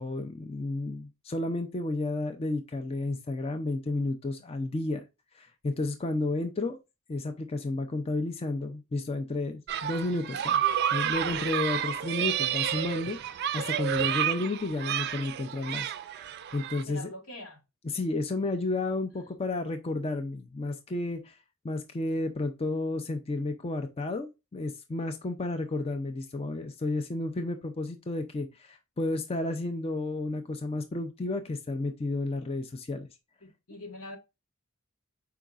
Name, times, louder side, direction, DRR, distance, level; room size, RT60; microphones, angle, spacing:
voice 1, 0.0-5.0 5.3-6.8 7.1-10.6 10.9-15.9 16.1-17.1 17.8-21.4 21.6-33.1, left 2 dB, 25° left, 0.4 m, -32 dB
sound 1, 9.7-16.8, right 10 dB, 50° right, 0.3 m, -30 dB
voice 2, 16.9-17.6 33.4-34.2, left 1 dB, 80° left, 1.4 m, -43 dB
5.0 x 4.6 x 2.3 m
head